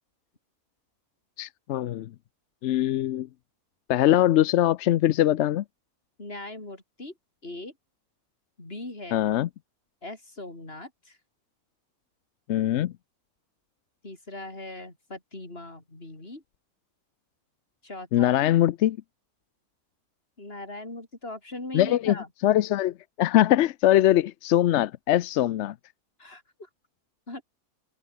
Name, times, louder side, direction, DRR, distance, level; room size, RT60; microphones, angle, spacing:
voice 1, 1.4-2.1 2.6-3.3 3.9-5.6 9.1-9.5 12.5-12.9 18.1-19.0 21.7-22.1 22.4-25.7, left 13 dB, 65° left, 0.7 m, -22 dB
voice 2, 6.2-7.1 7.4-7.7 8.6-9.2 10.0-11.2 14.0-16.4 17.8-18.4 20.4-22.3 26.2-26.7 27.3-27.4, left 2 dB, 40° left, 5.0 m, -39 dB
omnidirectional pair, 1.5 m